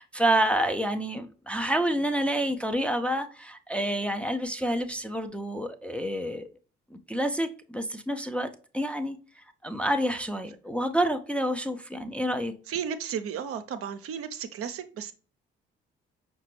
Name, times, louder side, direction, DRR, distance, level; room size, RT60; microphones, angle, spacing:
voice 1, 0.0-6.5 6.9-9.2 9.6-12.5, right 1 dB, 5° left, 0.5 m, -28 dB
voice 2, 12.7-15.1, right 8 dB, 50° right, 0.6 m, -34 dB
5.6 x 2.3 x 3.1 m
figure-of-eight pair, 45°, 29 cm